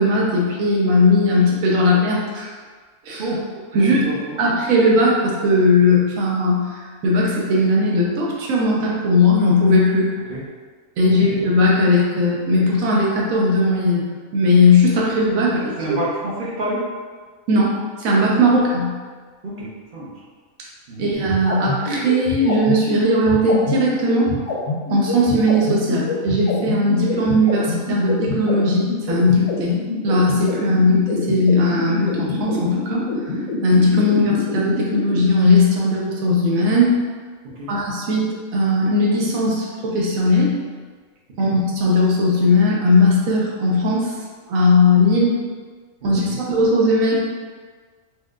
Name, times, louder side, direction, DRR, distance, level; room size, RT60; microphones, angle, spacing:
voice 1, 0.0-2.5 3.1-3.2 3.7-4.0 4.4-10.1 11.0-14.0 14.3-15.5 17.5-18.9 21.0-24.3 24.9-29.7 30.0-33.0 33.6-36.9 37.7-38.3 38.5-40.6 41.4-44.1 44.5-45.4 46.0-47.2, left 2 dB, 80° right, -3 dB, 1.1 m, -18 dB
voice 2, 3.7-4.4 10.3-10.4 11.2-11.3 15.8-16.8 19.4-20.1 20.9-21.1 37.6-37.7 41.4-41.5 46.0-46.4, right 1 dB, 50° right, -6 dB, 0.7 m, -28 dB
sound 1, 21.1-35.2, left 3 dB, 75° left, 1.0 m, -26 dB
4.3 x 2.2 x 2.4 m, 1.5 s
omnidirectional pair, 1.4 m